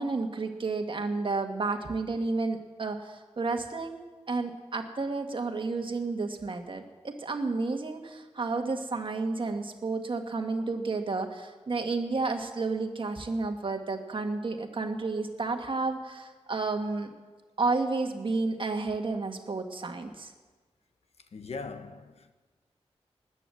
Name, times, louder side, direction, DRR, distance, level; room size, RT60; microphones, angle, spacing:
voice 1, 0.0-4.0 4.3-17.1 17.6-20.3, right 3 dB, 50° right, 1.6 m, -31 dB
voice 2, 21.3-22.3, left 4 dB, 70° left, 1.1 m, -40 dB
20.0 x 9.1 x 7.7 m
wide cardioid pair, 120°, 11 cm